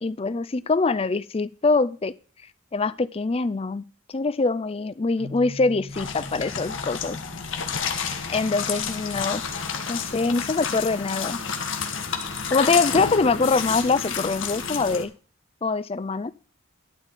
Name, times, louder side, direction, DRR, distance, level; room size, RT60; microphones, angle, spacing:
voice 1, 0.0-2.1 2.7-3.8 4.1-7.2 8.3-9.4 9.9-11.4 12.5-15.1 15.6-16.3, left 3 dB, 25° left, 17 dB, 0.4 m, -24 dB
Keyboard (musical), 5.2-8.1, left 1 dB, 75° right, 6.9 m, -42 dB
sound 1, 5.9-15.0, left 6 dB, 60° left, 1.4 m, -30 dB
12.0 x 4.2 x 8.1 m, 0.39 s
head